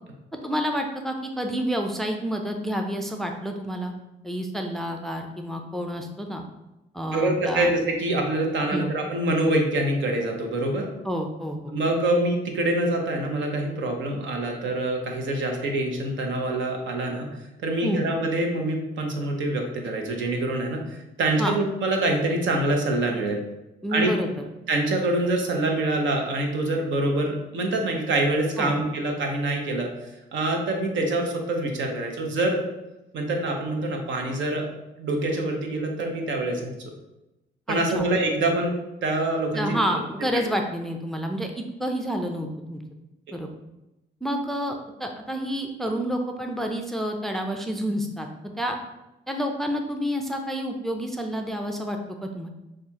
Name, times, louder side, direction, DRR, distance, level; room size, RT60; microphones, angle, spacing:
voice 1, 0.4-3.9 4.2-6.4 6.9-7.7 8.7-8.9 11.0-11.7 17.8-18.0 21.4-21.5 23.8-24.3 28.6-28.8 37.7-38.1 39.5-42.8 43.3-43.5 44.2-48.3 48.6-48.8 49.3-52.5, equal, ahead, 3 dB, 0.4 m, -29 dB
voice 2, 7.1-10.9 11.7-17.3 17.6-23.4 23.9-24.1 24.7-29.9 30.3-32.6 33.1-34.7 35.0-36.7 37.7-38.7 39.0-39.8, right 2 dB, 70° right, 2 dB, 0.9 m, -25 dB
6.6 x 2.4 x 2.8 m, 0.96 s
cardioid pair, 90°, 20 cm